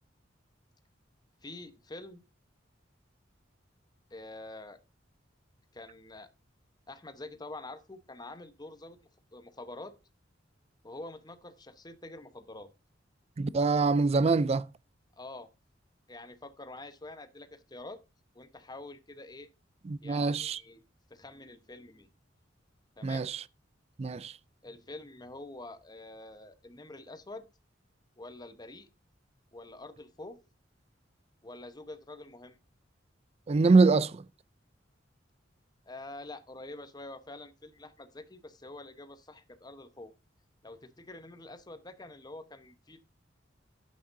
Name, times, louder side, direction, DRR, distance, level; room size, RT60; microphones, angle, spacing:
voice 1, 1.4-2.2 4.1-4.8 5.7-6.3 6.9-9.9 10.8-12.7 15.2-15.5 16.1-18.0 18.3-19.5 20.0-20.8 21.1-22.1 23.0-23.3 24.6-27.5 28.2-28.9 29.5-30.4 31.4-32.6 35.8-40.1 40.6-43.0, left 2 dB, 20° left, 1.0 m, -46 dB
voice 2, 13.4-14.7 19.9-20.6 23.0-23.4 24.0-24.3 33.5-34.2, right 4 dB, 35° right, 0.4 m, -24 dB
11.0 x 8.6 x 2.7 m
head